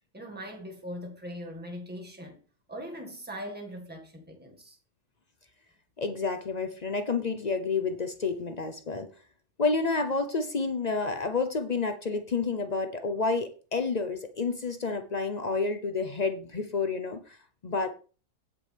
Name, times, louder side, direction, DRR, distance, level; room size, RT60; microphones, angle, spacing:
voice 1, 0.1-2.4 2.7-4.8, equal, 5° right, 1.7 m, -40 dB
voice 2, 6.0-9.1 9.6-17.4 17.6-17.9, left 4 dB, 60° left, 0.4 m, -29 dB
17.5 x 6.0 x 3.4 m
omnidirectional pair, 1.7 m